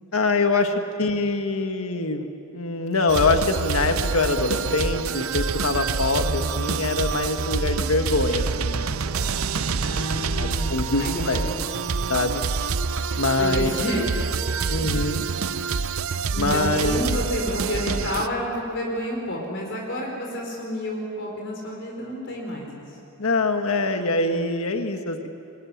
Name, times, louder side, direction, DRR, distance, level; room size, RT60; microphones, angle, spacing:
voice 1, 0.1-2.3 2.5-9.0 9.5-10.1 10.4-11.5 12.1-12.4 13.2-13.7 14.7-15.2 16.4-17.1 23.2-25.3, left 3 dB, 75° left, 6 dB, 1.6 m, -24 dB
sound 1, 3.1-18.3, right 5 dB, 80° right, 0.7 m, -27 dB
voice 2, 9.8-11.6 13.4-14.1 14.6-14.9 16.3-23.0, left 1 dB, 60° left, -1 dB, 4.5 m, -30 dB
23.0 x 22.0 x 9.9 m, 2.7 s
head